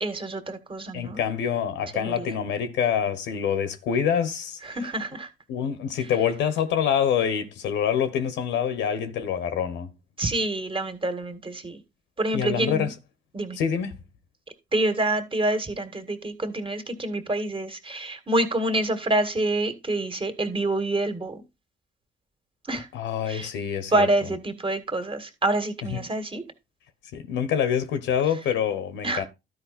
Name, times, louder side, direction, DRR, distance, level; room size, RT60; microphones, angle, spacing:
voice 1, 0.0-1.2 1.9-2.1 4.7-5.3 10.2-11.8 12.2-12.9 13.3-13.6 14.7-21.4 22.7-22.9 23.3-23.5 23.9-26.4 29.0-29.2, right 2 dB, 25° right, 2.0 m, -27 dB
voice 2, 0.9-4.9 5.5-9.9 12.3-13.0 13.5-14.0 22.9-24.1 25.9-26.1 27.1-29.2, left 8 dB, 75° left, 1.1 m, -26 dB
12.5 x 4.8 x 4.2 m
supercardioid pair, 55°, 19 cm